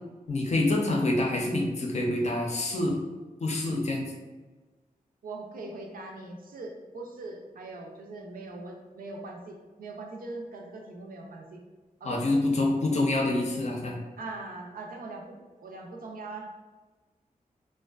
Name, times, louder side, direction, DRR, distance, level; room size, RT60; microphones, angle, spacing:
voice 1, 0.3-3.0 3.4-4.1 12.0-14.0, left 2 dB, 50° left, 0 dB, 0.5 m, -26 dB
voice 2, 5.2-11.6 12.0-12.2 14.2-16.5, right 2 dB, 80° right, 1 dB, 0.4 m, -41 dB
2.5 x 2.2 x 2.3 m, 1.3 s
cardioid pair, 60°, 14 cm